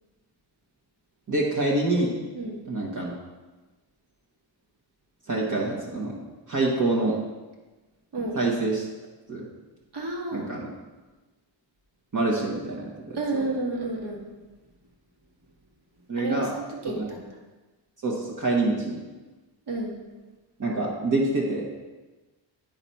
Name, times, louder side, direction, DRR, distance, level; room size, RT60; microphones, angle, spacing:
voice 1, 1.3-2.2 2.7-3.1 5.3-6.2 6.5-7.2 8.3-8.8 9.3-9.4 10.3-10.7 12.1-13.5 16.1-16.5 17.0-17.1 18.0-19.0 20.6-21.6, right 2 dB, 40° right, -3 dB, 1.4 m, -26 dB
voice 2, 9.9-10.5 13.1-14.2 16.2-17.3 19.7-20.0, right 2 dB, 60° right, -1 dB, 2.0 m, -31 dB
9.1 x 4.0 x 5.6 m, 1.2 s
cardioid pair, 110°, 46 cm